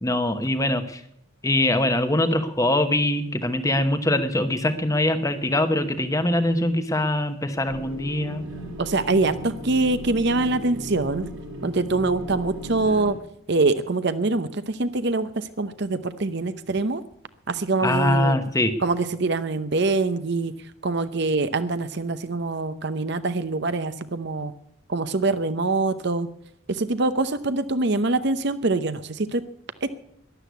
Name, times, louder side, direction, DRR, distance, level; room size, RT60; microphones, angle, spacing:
voice 1, 0.0-1.0 1.4-8.4 17.8-18.7, left 1 dB, 15° left, 9 dB, 1.0 m, -23 dB
sound 1, 7.7-13.1, right 1 dB, 85° right, 5.2 m, -36 dB
voice 2, 8.8-11.3 11.6-13.2 13.5-17.0 17.5-18.4 18.8-20.5 20.8-24.5 24.9-26.3 26.7-29.4 29.8-29.9, right 3 dB, 50° right, 12 dB, 0.8 m, -24 dB
12.5 x 11.0 x 8.2 m, 0.71 s
head